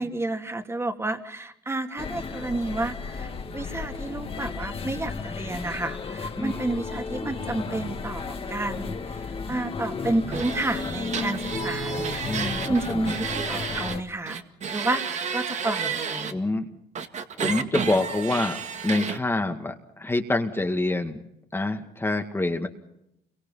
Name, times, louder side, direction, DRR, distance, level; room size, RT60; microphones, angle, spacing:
voice 1, 0.0-14.4 14.7-16.4, right 2 dB, 15° right, 6 dB, 2.7 m, -30 dB
sound 1, 2.0-14.0, left 5 dB, 35° left, 2.2 m, -34 dB
sound 2, 10.3-14.0 14.3-16.3 17.0-19.2, right 6 dB, 45° right, 2.1 m, -31 dB
voice 2, 12.3-13.0 16.3-16.6 17.3-21.2 21.5-22.7, left 2 dB, 15° left, 4 dB, 2.0 m, -26 dB
29.0 x 23.5 x 5.7 m, 0.81 s
cardioid pair, 110°, 17 cm